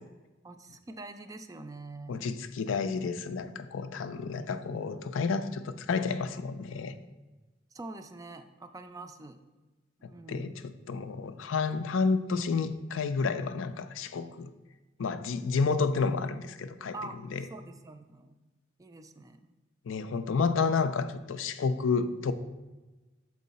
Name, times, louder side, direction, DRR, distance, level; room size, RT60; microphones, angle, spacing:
voice 1, 0.4-2.3 7.7-9.4 10.0-10.6 16.9-17.2 17.5-18.3 18.8-19.5, right 2 dB, 20° right, 8 dB, 0.3 m, -45 dB
voice 2, 2.1-6.9 10.0-14.5 15.0-16.9 17.3-17.4 19.9-22.3, left 4 dB, 90° left, 10 dB, 0.4 m, -30 dB
6.5 x 4.6 x 4.0 m, 1.2 s
head